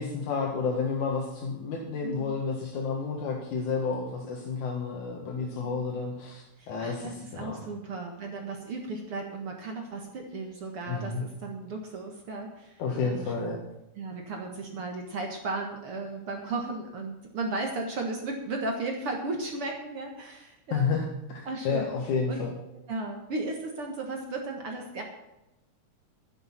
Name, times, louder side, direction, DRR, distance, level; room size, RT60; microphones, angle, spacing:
voice 1, 0.0-7.6 10.9-11.2 12.8-13.6 20.7-22.5, left 5 dB, 85° left, -1 dB, 2.9 m, -31 dB
voice 2, 2.0-2.4 5.5-5.8 6.6-13.6 14.0-21.0 21.5-21.9 22.3-22.4 22.9-25.0, right 3 dB, 55° right, 2 dB, 2.2 m, -35 dB
12.5 x 10.5 x 5.8 m, 0.93 s
omnidirectional pair, 3.3 m